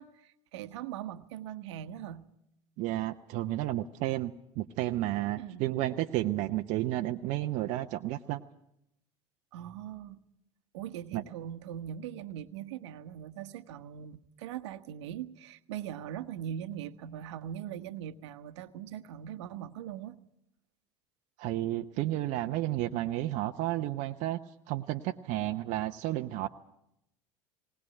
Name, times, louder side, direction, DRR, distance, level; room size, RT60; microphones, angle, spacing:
voice 1, 0.0-2.3 5.4-5.6 9.5-10.2 10.7-20.2, right 10 dB, 70° right, 11 dB, 1.2 m, -41 dB
voice 2, 2.8-8.4 11.1-11.2 21.4-24.4 24.7-26.5, right 15 dB, 55° right, 5 dB, 0.8 m, -32 dB
20.0 x 19.0 x 9.0 m, 0.81 s
hypercardioid pair, 75°, 15 cm